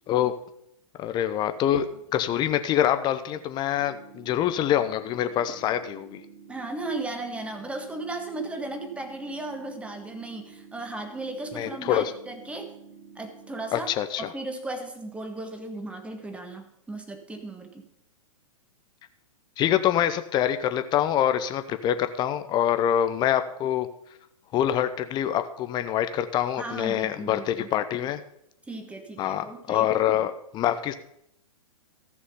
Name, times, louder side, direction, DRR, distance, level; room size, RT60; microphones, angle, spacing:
voice 1, 1.0-6.2 11.5-12.1 13.7-14.3 19.6-23.9 24.5-28.2 29.2-30.9, left 11 dB, 25° left, 11 dB, 0.7 m, -25 dB
sound 1, 3.8-13.8, right 5 dB, 70° right, 2.4 m, -49 dB
voice 2, 6.5-12.8 13.1-13.9 14.2-17.8 26.6-27.7 28.7-29.9, right 2 dB, 5° right, 5 dB, 1.5 m, -36 dB
14.5 x 6.3 x 5.6 m, 0.76 s
hypercardioid pair, 115°, 18 cm